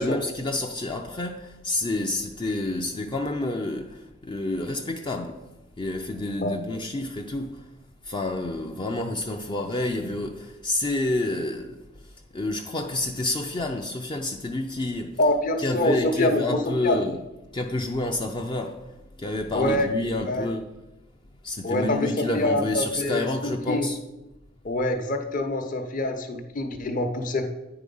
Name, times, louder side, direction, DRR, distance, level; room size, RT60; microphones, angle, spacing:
voice 1, 0.0-5.5 5.8-7.7 8.0-15.2 15.6-17.2 17.5-20.7 21.4-24.0, left 2 dB, 25° left, 0.4 m, -29 dB
voice 2, 15.2-17.0 19.5-19.9 20.1-20.5 21.6-23.9 24.6-27.4, left 1 dB, 45° left, 0.8 m, -25 dB
9.1 x 4.8 x 5.4 m
head